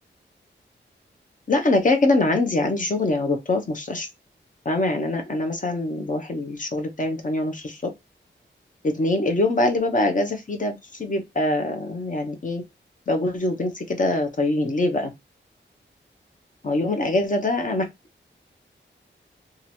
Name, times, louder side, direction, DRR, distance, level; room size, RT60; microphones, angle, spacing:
voice 1, 1.5-4.1 4.6-7.9 8.8-12.6 13.1-15.1 16.6-17.8, left 2 dB, 40° left, 0.9 m, -23 dB
2.9 x 2.5 x 4.2 m
wide cardioid pair, 130°, 20 cm